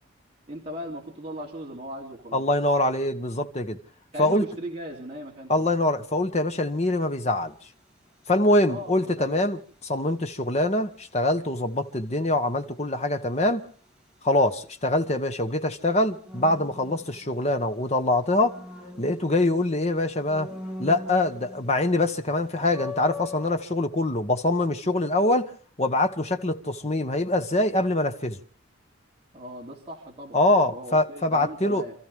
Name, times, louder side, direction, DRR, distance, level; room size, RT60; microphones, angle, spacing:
voice 1, 0.5-2.4 4.1-5.7 8.6-9.4 29.3-30.4 30.7-31.9, equal, 30° right, 3.1 m, -38 dB
voice 2, 2.3-3.8 4.2-4.4 5.5-7.5 8.3-13.7 14.2-18.6 19.0-20.5 20.8-25.5 25.8-28.4 30.3-31.8, left 1 dB, 30° left, 1.2 m, -24 dB
sound 1, 6.8-7.0 16.2-17.7 18.1-19.8 20.3-21.8 22.2-22.3 22.6-23.5, left 2 dB, 5° right, 2.0 m, -40 dB
28.5 x 14.0 x 3.6 m
head